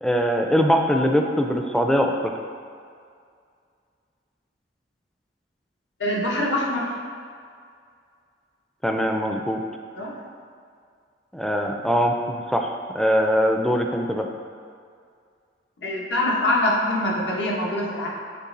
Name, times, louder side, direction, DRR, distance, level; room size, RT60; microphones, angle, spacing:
voice 1, 0.0-2.3 8.8-9.6 11.3-14.3, equal, 5° left, 2 dB, 0.4 m, -22 dB
voice 2, 6.0-6.9 10.0-10.1 15.8-18.1, left 1 dB, 80° left, -3 dB, 1.2 m, -24 dB
8.4 x 3.2 x 3.9 m, 2.2 s
head